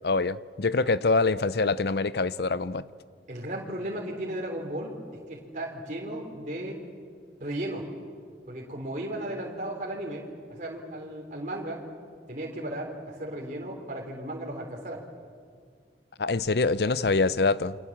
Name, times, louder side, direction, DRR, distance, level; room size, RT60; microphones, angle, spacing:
voice 1, 0.0-2.8 16.2-17.8, left 3 dB, 65° left, 0.7 m, -25 dB
voice 2, 3.3-5.0 5.3-6.8 7.4-7.8 8.5-11.8 12.3-15.0, right 1 dB, 45° right, 3.6 m, -35 dB
29.0 x 24.0 x 7.4 m
head